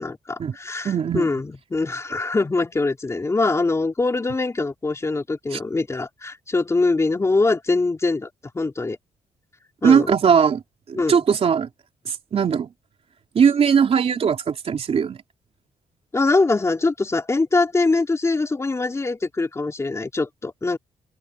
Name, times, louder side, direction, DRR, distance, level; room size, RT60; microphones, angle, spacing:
voice 1, 0.0-8.3 8.5-9.0 9.8-10.1 10.9-11.2 16.1-20.8, left 3 dB, 20° left, 3.8 m, -23 dB
voice 2, 0.8-1.3 5.5-5.6 9.8-10.6 10.9-11.7 12.0-12.7 13.3-15.2, right 7 dB, 50° right, 3.4 m, -19 dB
cardioid pair, 130°, 14 cm